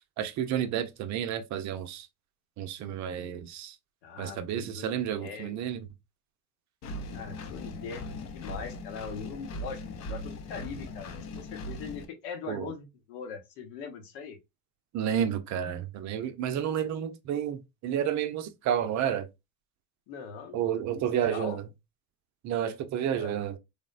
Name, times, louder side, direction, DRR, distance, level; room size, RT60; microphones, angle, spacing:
voice 1, 0.2-2.1 2.6-3.8 4.2-5.9 12.5-12.7 14.9-19.3 20.5-21.6 22.4-23.6, right 9 dB, 45° right, 0.5 m, -31 dB
voice 2, 4.0-5.5 7.1-14.4 20.1-20.6 20.9-21.0 21.3-21.6 23.1-23.3, left 6 dB, 70° left, 0.9 m, -41 dB
Engine, 6.8-12.0, left 2 dB, 45° left, 0.6 m, -39 dB
3.3 x 2.0 x 2.4 m
supercardioid pair, 85°, 39 cm